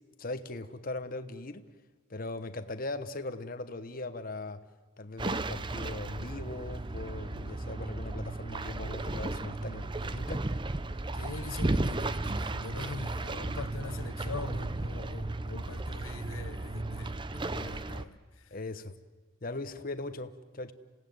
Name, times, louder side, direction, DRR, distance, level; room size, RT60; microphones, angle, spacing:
voice 1, 0.2-1.7 2.1-4.6 5.0-10.4 12.8-12.9 18.5-18.9 19.4-20.7, left 2 dB, 45° left, 1.0 m, -39 dB
sound 1, 5.2-18.1, right 2 dB, 25° right, 0.7 m, -34 dB
voice 2, 11.1-18.2, left 4 dB, 90° left, 0.8 m, -43 dB
28.0 x 17.0 x 9.4 m
head